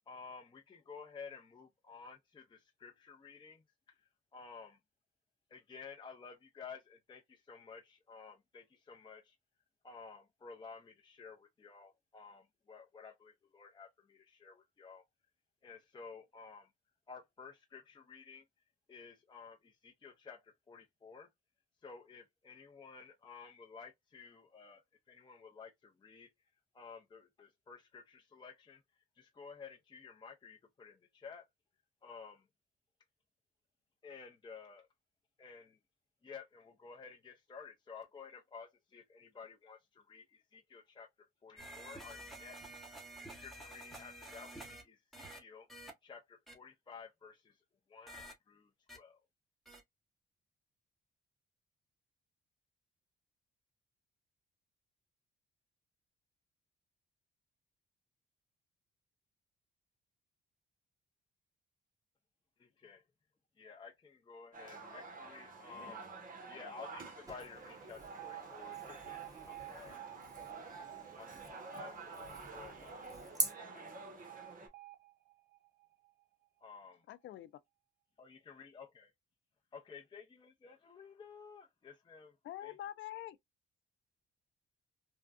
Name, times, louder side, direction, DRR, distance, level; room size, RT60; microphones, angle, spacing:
voice 1, 0.1-4.8 5.5-9.4 9.8-15.1 15.6-16.7 17.1-18.5 18.9-21.3 21.8-26.3 26.7-31.5 32.0-32.5 34.0-34.9 35.4-35.8 36.2-42.7 43.1-47.6 47.9-49.2 62.6-63.0 63.6-66.0 66.5-70.0 71.2-71.4 71.7-73.1 74.1-74.2 76.6-77.1 78.2-79.1 79.7-82.4 82.6-82.7, left 5 dB, 25° left, 0.6 m, -53 dB
sound 1, 41.6-44.8 45.1-45.4 45.7-45.9 46.5-46.6 48.1-48.3 48.9-49.0 49.7-49.8, right 1 dB, ahead, 1.1 m, -50 dB
sound 2, 64.5-74.7, right 3 dB, 45° right, 1.1 m, -50 dB
voice 2, 67.3-73.5, right 2 dB, 20° right, 1.5 m, -45 dB
Alarm, 68.2-76.2, right 19 dB, 60° right, 0.6 m, -52 dB
voice 3, 77.1-77.6 82.4-83.4, left 12 dB, 70° left, 0.4 m, -45 dB
3.5 x 2.2 x 2.5 m
cardioid pair, 90°, 20 cm